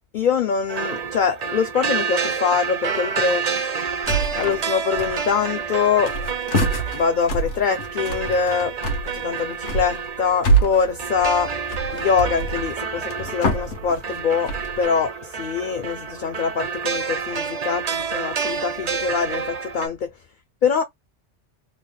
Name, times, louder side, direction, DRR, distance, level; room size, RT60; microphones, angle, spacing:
voice 1, 0.1-3.4 4.4-6.1 6.9-8.7 9.1-11.5 11.9-20.1 20.6-20.8, left 6 dB, 55° left, 0.6 m, -23 dB
sound 1, 0.7-19.9, right 6 dB, 45° right, 0.6 m, -29 dB
sound 2, 3.8-4.3 4.6-4.7 6.5-7.6 9.3-10.2 12.0-13.0, right 9 dB, 85° right, 1.5 m, -37 dB
sound 3, 4.0-4.7 4.9-5.5 5.8-14.8, right 2 dB, 80° left, 1.3 m, -26 dB
3.8 x 2.2 x 3.3 m
omnidirectional pair, 1.2 m